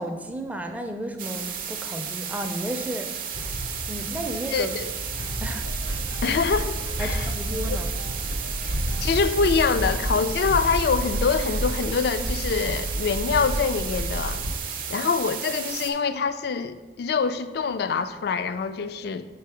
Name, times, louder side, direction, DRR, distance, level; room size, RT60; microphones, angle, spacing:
voice 1, 0.0-3.1 3.9-4.7 5.4-5.7 7.0-7.9, right 1 dB, 10° right, 5 dB, 0.4 m, -33 dB
sound 1, 1.2-15.9, right 7 dB, 50° right, 0.6 m, -33 dB
sound 2, 3.3-12.2, equal, 80° left, 1.0 m, -36 dB
voice 2, 4.5-4.8 6.2-7.3 7.7-7.8 8.6-8.7 9.0-14.4 14.9-19.3, left 5 dB, 60° left, 12 dB, 0.3 m, -25 dB
sound 3, 5.6-14.6, right 1 dB, 85° right, 0.7 m, -30 dB
4.8 x 4.6 x 4.8 m, 1.3 s
head